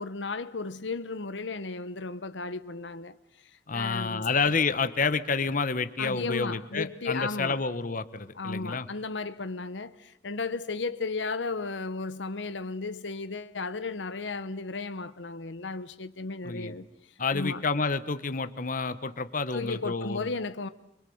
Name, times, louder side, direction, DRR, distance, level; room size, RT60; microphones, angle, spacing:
voice 1, 0.0-3.1 3.7-4.3 6.0-7.6 8.4-16.9 17.3-17.7 19.5-20.7, left 3 dB, 90° left, 1.1 m, -34 dB
voice 2, 3.7-8.9 16.4-16.7 17.2-20.3, left 4 dB, 50° left, 1.2 m, -29 dB
26.0 x 25.0 x 7.9 m
head